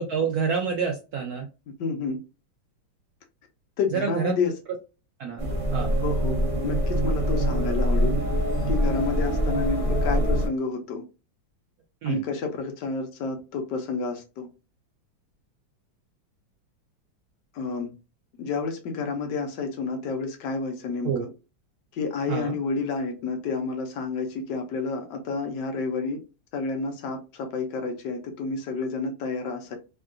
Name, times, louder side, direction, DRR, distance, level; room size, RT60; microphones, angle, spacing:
voice 1, 0.0-1.5 3.9-4.4 5.2-5.4 5.7-5.9 12.0-12.2 21.0-21.3 22.3-22.5, right 6 dB, 75° right, 0.8 m, -27 dB
voice 2, 1.7-2.2 3.8-4.5 6.0-8.2 8.7-11.0 12.0-14.5 17.5-17.9 18.4-21.1 21.9-26.2 26.5-29.8, left 4 dB, 75° left, 1.2 m, -30 dB
sound 1, 5.4-10.5, equal, 30° right, 0.7 m, -24 dB
3.6 x 2.3 x 2.3 m
omnidirectional pair, 2.1 m